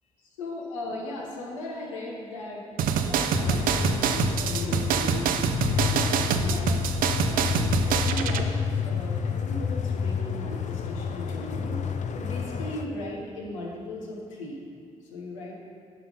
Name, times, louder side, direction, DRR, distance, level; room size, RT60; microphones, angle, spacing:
voice 1, 0.4-5.3 5.8-6.7 7.2-8.6 8.8-11.8 12.1-14.6 15.1-15.6, left 1 dB, 85° left, -2 dB, 1.2 m, -37 dB
sound 1, 2.8-8.4, right 7 dB, 60° right, 0.5 m, -26 dB
sound 2, 3.3-12.8, left 6 dB, 50° left, 0.6 m, -29 dB
9.4 x 5.4 x 5.5 m, 2.3 s
figure-of-eight pair, 40°, 16 cm